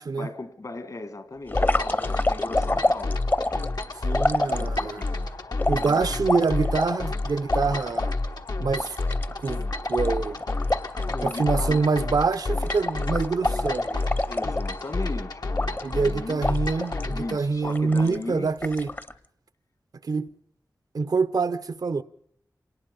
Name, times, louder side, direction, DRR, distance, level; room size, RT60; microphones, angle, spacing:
voice 1, 0.1-3.2 4.4-5.1 5.8-6.2 11.1-11.8 13.4-13.5 14.3-16.4 17.1-18.5, left 2 dB, 60° left, 1.7 m, -37 dB
sound 1, 1.5-17.4, left 2 dB, 85° left, 1.2 m, -30 dB
sound 2, 1.5-5.1 5.6-8.1 8.5-8.6 8.8-11.7 12.0-12.2 12.5-15.0 15.5-16.1 16.4-17.1 17.6-18.2 18.6-19.1, left 2 dB, 30° left, 0.7 m, -28 dB
voice 2, 4.0-5.0 5.7-8.1 8.6-9.0 9.4-10.4 11.2-14.1 15.8-18.9 20.1-20.3 20.9-22.0, right 4 dB, 75° right, 0.7 m, -26 dB
26.5 x 18.5 x 5.3 m
wide cardioid pair, 65°, 7 cm